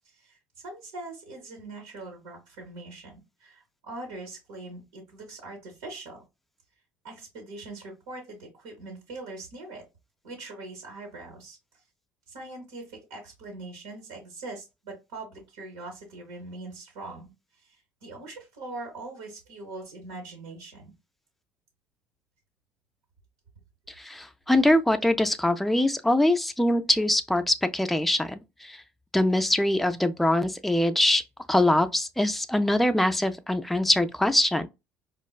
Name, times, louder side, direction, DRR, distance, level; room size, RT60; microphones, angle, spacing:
voice 1, 0.6-6.2 7.0-9.8 10.2-11.6 12.3-17.3 17.6-20.9, right 2 dB, 90° right, 1.0 m, -42 dB
voice 2, 24.0-28.8 29.1-31.2 31.5-34.7, left 1 dB, ahead, 0.3 m, -23 dB
4.4 x 2.1 x 2.3 m
supercardioid pair, 80°, 6 cm